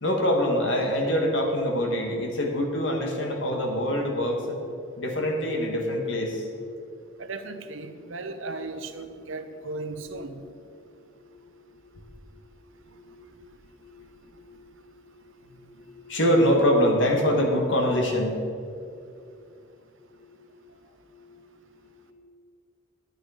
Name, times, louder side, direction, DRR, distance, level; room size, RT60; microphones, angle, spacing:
voice 1, 0.0-4.4 5.0-6.4 16.0-18.4, equal, 70° left, 2 dB, 1.7 m, -24 dB
voice 2, 7.2-10.4, right 3 dB, 75° right, 8 dB, 0.8 m, -36 dB
10.0 x 9.5 x 5.0 m, 2.5 s
head